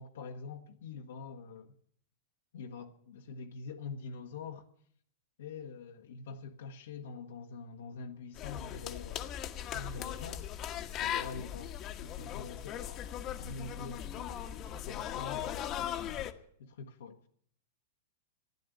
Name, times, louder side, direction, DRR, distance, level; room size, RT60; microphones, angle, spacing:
voice 1, 0.0-1.7 2.5-4.7 5.4-9.4 9.7-10.5 11.0-16.3 16.6-17.2, left 4 dB, 75° left, 1.1 m, -45 dB
sound 1, 8.3-16.3, left 10 dB, 40° left, 1.1 m, -39 dB
13.5 x 10.0 x 9.3 m
hypercardioid pair, 110°, 0 cm